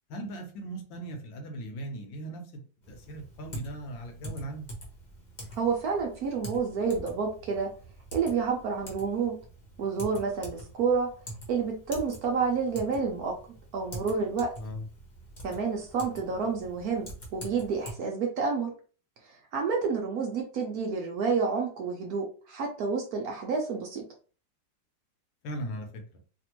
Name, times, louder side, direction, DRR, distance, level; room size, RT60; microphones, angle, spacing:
voice 1, 0.1-4.7 14.6-14.9 25.4-26.0, right 1 dB, 80° left, 4 dB, 1.5 m, -38 dB
Typing, 2.8-17.9, right 1 dB, 35° left, 0.8 m, -45 dB
voice 2, 5.6-7.7 8.1-9.4 9.8-11.1 11.5-13.3 13.7-14.5 15.4-18.7 19.5-24.0, right 5 dB, 65° right, 1 dB, 1.0 m, -29 dB
3.4 x 2.5 x 2.9 m, 0.38 s
omnidirectional pair, 2.0 m